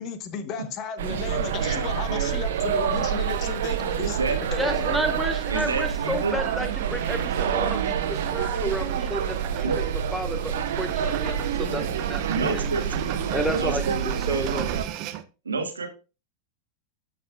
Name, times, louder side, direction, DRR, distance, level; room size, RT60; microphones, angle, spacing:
voice 1, 0.0-4.9, left 6 dB, 35° left, 0.9 m, -34 dB
sound 1, 1.0-14.8, right 8 dB, 55° right, 1.1 m, -27 dB
sound 2, 1.6-15.2, right 12 dB, 40° right, 0.6 m, -39 dB
voice 2, 3.8-4.4 5.5-6.3 9.6-9.8 12.3-13.1 13.5-14.5 15.4-15.9, right 4 dB, 75° right, 1.5 m, -29 dB
voice 3, 4.6-9.7 10.1-12.7 13.3-14.7, right 1 dB, ahead, 1.1 m, -31 dB
12.5 x 4.9 x 2.2 m
figure-of-eight pair, 90°, 0 cm